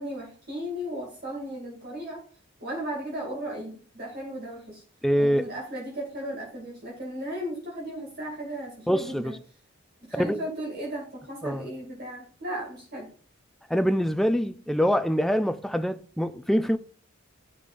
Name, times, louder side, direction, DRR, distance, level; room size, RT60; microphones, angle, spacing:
voice 1, 0.0-2.2 2.6-4.8 5.2-9.4 10.0-13.1, equal, 50° right, 2.4 m, -35 dB
voice 2, 5.0-5.4 8.9-9.3 10.1-10.4 11.4-11.7 13.7-16.8, equal, ahead, 0.3 m, -24 dB
11.5 x 4.9 x 2.5 m
head